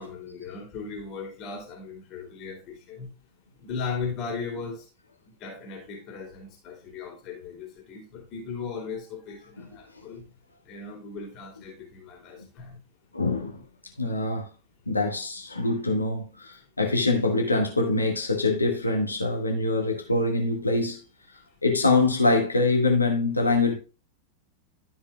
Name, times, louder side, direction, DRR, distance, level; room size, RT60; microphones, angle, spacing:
voice 1, 0.0-3.1 3.6-4.9 5.4-10.2 10.6-12.8, left 5 dB, 35° left, 2.8 m, -37 dB
voice 2, 13.1-13.6 14.0-14.5 14.9-21.0 21.6-23.7, left 3 dB, 80° left, 1.7 m, -24 dB
12.5 x 5.5 x 2.3 m
figure-of-eight pair, 90°, 0 cm